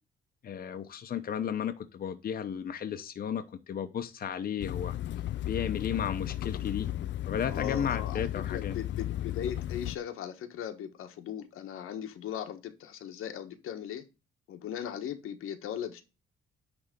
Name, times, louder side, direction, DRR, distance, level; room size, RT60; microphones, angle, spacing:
voice 1, 0.4-4.9 5.5-6.9 7.3-8.7, left 8 dB, 45° left, 0.8 m, -34 dB
sound 1, 4.6-10.0, left 13 dB, 60° left, 0.4 m, -34 dB
voice 2, 7.4-14.0 14.5-16.0, left 9 dB, 90° left, 1.4 m, -38 dB
9.8 x 3.6 x 5.2 m
cardioid pair, 145°, 21 cm